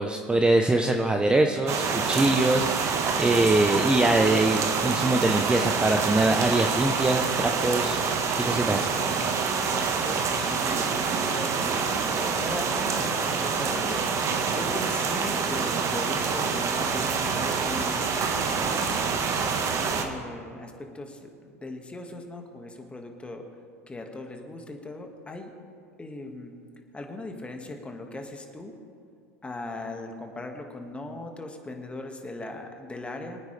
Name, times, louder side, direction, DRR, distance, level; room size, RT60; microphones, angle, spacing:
voice 1, 0.0-8.9, right 2 dB, 10° right, 4 dB, 0.8 m, -23 dB
sound 1, 1.7-20.1, right 5 dB, 35° right, 1.4 m, -26 dB
voice 2, 9.7-11.9 12.4-19.3 19.6-23.5 23.9-25.5 26.0-26.5 26.9-28.8 29.4-33.4, left 2 dB, 15° left, 4 dB, 1.8 m, -39 dB
23.5 x 9.4 x 3.4 m, 2.3 s
hypercardioid pair, 90°, 8 cm